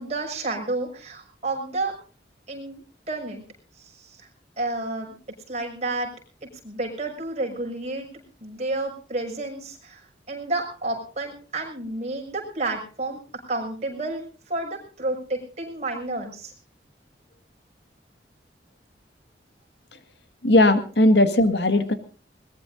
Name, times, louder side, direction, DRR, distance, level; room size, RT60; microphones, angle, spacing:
voice 1, 0.0-1.9 2.5-3.4 3.8-4.3 4.6-5.2 5.5-6.1 6.6-8.1 8.4-13.2 13.5-16.5, right 2 dB, 40° right, 1 dB, 6.2 m, -30 dB
voice 2, 20.4-21.9, left 1 dB, 80° left, 9 dB, 1.8 m, -18 dB
21.5 x 20.0 x 2.6 m, 0.38 s
head